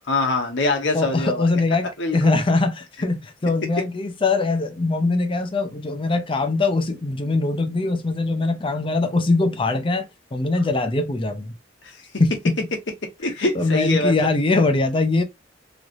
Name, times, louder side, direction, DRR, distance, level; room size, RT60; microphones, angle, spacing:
voice 1, 0.1-1.5 2.0-2.4 11.8-12.1 13.2-14.3, left 2 dB, 75° left, 1.0 m, -24 dB
voice 2, 0.9-1.9 2.1-10.1 10.3-11.5 12.2-12.3 13.6-15.2, left 3 dB, 30° left, 0.6 m, -22 dB
3.1 x 2.8 x 2.5 m
head